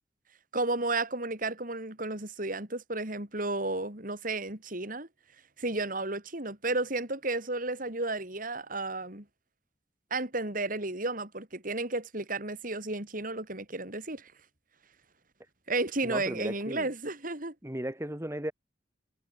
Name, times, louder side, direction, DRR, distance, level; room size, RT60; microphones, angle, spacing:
voice 1, 0.5-5.1 5.6-9.3 10.1-14.3 15.7-17.6, right 2 dB, 50° right, 5.3 m, -33 dB
voice 2, 16.0-16.9 17.6-18.5, right 1 dB, 15° right, 2.3 m, -35 dB
head